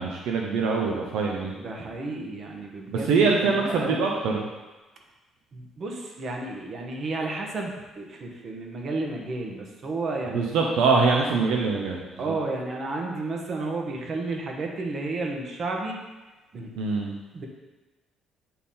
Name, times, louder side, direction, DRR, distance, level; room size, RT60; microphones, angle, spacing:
voice 1, 0.0-1.5 2.9-4.4 10.3-12.0 16.8-17.1, right 4 dB, 85° right, 0 dB, 0.7 m, -23 dB
voice 2, 1.5-3.1 3.4-4.0 5.5-10.5 12.2-16.0 16.5-16.7 17.3-17.5, right 2 dB, 50° right, 1 dB, 1.2 m, -32 dB
8.1 x 3.8 x 4.3 m, 1.2 s
cardioid pair, 95°, 0 cm